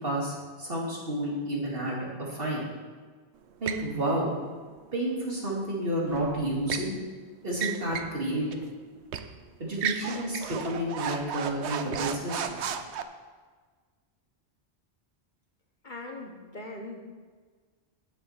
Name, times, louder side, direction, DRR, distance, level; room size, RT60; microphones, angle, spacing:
voice 1, 0.0-2.6 3.6-4.3 4.9-6.9 7.4-8.4 9.6-12.6, right 1 dB, 60° right, -4 dB, 2.8 m, -30 dB
sound 1, 3.7-3.9 6.1-6.9 7.5-8.2 8.5-8.6 9.1-9.3 9.7-13.0, right 8 dB, 85° right, 1.0 m, -34 dB
voice 2, 15.8-17.0, left 2 dB, 45° left, 2 dB, 1.4 m, -40 dB
11.0 x 7.4 x 5.9 m, 1.5 s
omnidirectional pair, 1.1 m